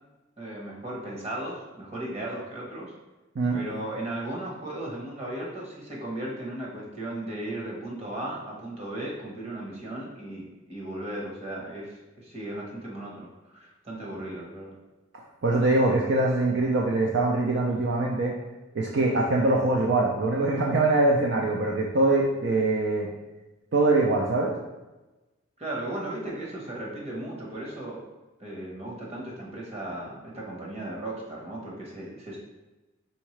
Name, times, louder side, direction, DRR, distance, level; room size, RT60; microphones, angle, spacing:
voice 1, 0.4-2.9 3.5-14.7 25.6-28.0 28.4-32.4, right 1 dB, 35° right, -3 dB, 1.1 m, -36 dB
voice 2, 15.4-18.3 18.7-23.1 23.7-24.5, right 2 dB, 60° right, -1 dB, 0.5 m, -23 dB
4.4 x 3.6 x 3.1 m, 1.1 s
head